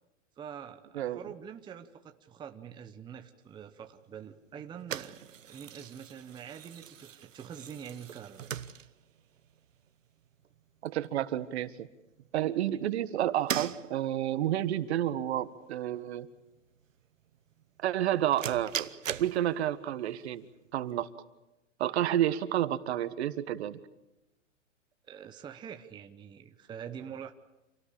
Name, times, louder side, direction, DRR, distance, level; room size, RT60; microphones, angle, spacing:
voice 1, 0.4-8.5 25.0-27.3, right 8 dB, 10° right, 6 dB, 0.9 m, -45 dB
sound 1, 3.4-21.1, right 9 dB, 85° right, 1.2 m, -42 dB
voice 2, 10.8-11.9 12.3-16.3 17.8-18.9 19.2-20.5 20.7-21.1 21.8-23.8, right 12 dB, 60° right, 12 dB, 1.6 m, -30 dB
27.5 x 18.0 x 8.7 m, 0.98 s
hypercardioid pair, 140°, 37 cm